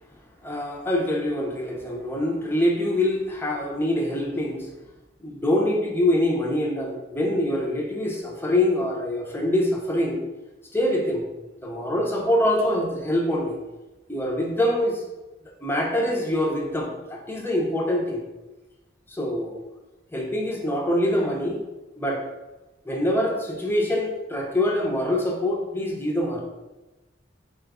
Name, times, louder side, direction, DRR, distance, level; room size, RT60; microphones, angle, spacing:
voice 1, 0.4-4.7 5.2-10.2 10.7-11.3 11.6-13.6 14.1-15.0 15.6-18.2 19.1-19.6 20.1-21.6 22.0-22.2 22.9-26.4, left 1 dB, 10° left, -1 dB, 0.7 m, -24 dB
4.3 x 2.4 x 4.8 m, 1.1 s
head